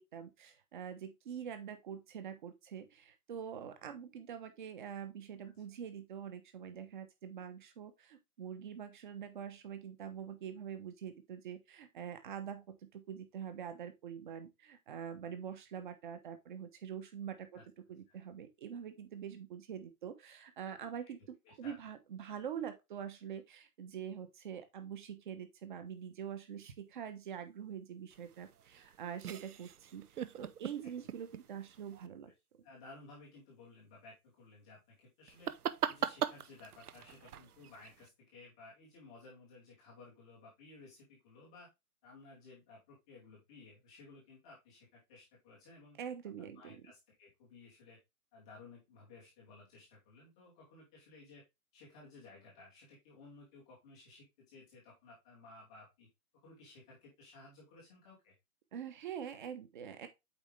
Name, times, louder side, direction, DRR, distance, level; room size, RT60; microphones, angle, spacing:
voice 1, 0.0-17.6 17.9-32.3 46.0-46.8 58.7-60.1, right 8 dB, 30° right, 1.2 m, -45 dB
voice 2, 21.4-21.8 30.8-30.9 32.6-35.5 35.8-41.7 42.0-46.0 46.4-48.0 48.3-51.4 51.7-56.1 56.4-58.3, left 3 dB, 5° left, 0.6 m, -57 dB
sound 1, 28.1-32.1 35.3-38.1, right 9 dB, 75° right, 0.8 m, -41 dB
8.2 x 4.3 x 3.3 m
hypercardioid pair, 160°, 45 cm